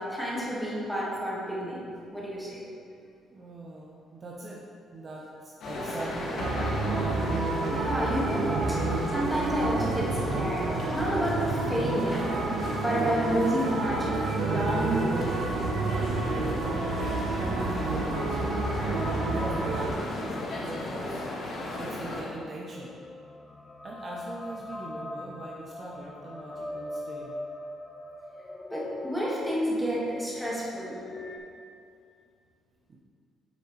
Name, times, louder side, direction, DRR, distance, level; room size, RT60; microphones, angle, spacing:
voice 1, 0.0-1.8 2.1-2.6 7.6-14.1 14.4-15.3 16.0-16.1 28.7-31.0, equal, ahead, -6 dB, 1.7 m, -30 dB
voice 2, 3.3-4.6 4.9-7.0 17.7-18.8 19.2-23.0 23.8-27.4 32.9-33.0, right 2 dB, 35° right, -3 dB, 0.8 m, -42 dB
sound 1, 5.6-22.2, left 1 dB, 60° left, 1.3 m, -35 dB
sound 2, 6.4-19.9, right 3 dB, 85° right, 0.7 m, -29 dB
sound 3, 18.9-31.4, left 1 dB, 20° left, 0.7 m, -42 dB
8.3 x 6.4 x 3.1 m, 2.4 s
cardioid pair, 125°, 0 cm